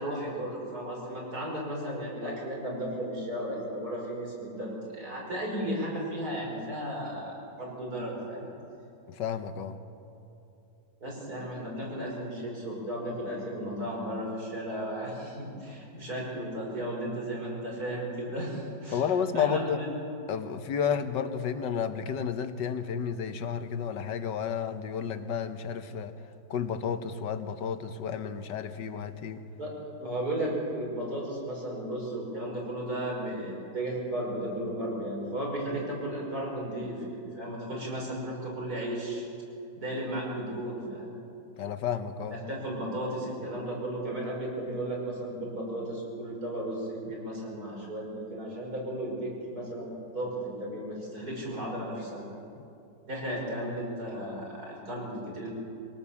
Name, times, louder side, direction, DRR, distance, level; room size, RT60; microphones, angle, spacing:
voice 1, 0.0-8.5 11.0-19.0 19.3-19.9 29.6-39.2 39.8-41.2 42.5-52.2 53.1-55.5, right 1 dB, 60° right, -3 dB, 6.1 m, -34 dB
voice 2, 9.1-9.8 18.9-19.8 20.3-26.1 26.5-29.4 41.6-42.4, left 7 dB, 80° left, 9 dB, 1.7 m, -31 dB
24.5 x 18.0 x 7.2 m, 2.8 s
omnidirectional pair, 1.9 m